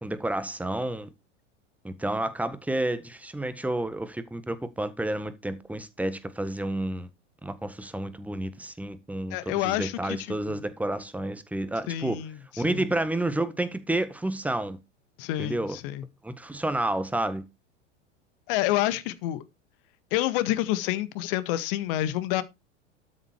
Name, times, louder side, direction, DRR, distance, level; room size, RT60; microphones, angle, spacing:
voice 1, 0.0-1.1 1.8-7.1 7.4-12.2 12.6-14.8 15.4-15.8 16.2-17.4, right 1 dB, 5° right, 1.5 m, -30 dB
voice 2, 9.3-10.6 11.9-12.8 15.2-16.0 18.5-19.4 20.1-22.4, left 14 dB, 50° left, 1.6 m, -28 dB
13.0 x 6.7 x 4.4 m
figure-of-eight pair, 90°, 36 cm